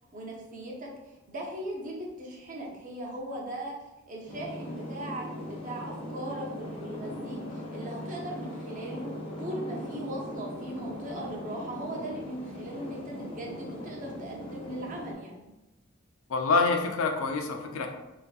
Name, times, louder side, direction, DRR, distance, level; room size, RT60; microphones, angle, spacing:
voice 1, 0.1-3.8 4.1-9.0 9.4-15.5, right 1 dB, 40° right, -2 dB, 0.5 m, -39 dB
sound 1, 4.3-15.1, left 1 dB, 25° left, 0.5 m, -39 dB
voice 2, 16.3-17.9, left 4 dB, 75° left, 4 dB, 0.4 m, -26 dB
2.5 x 2.4 x 2.2 m, 0.99 s
head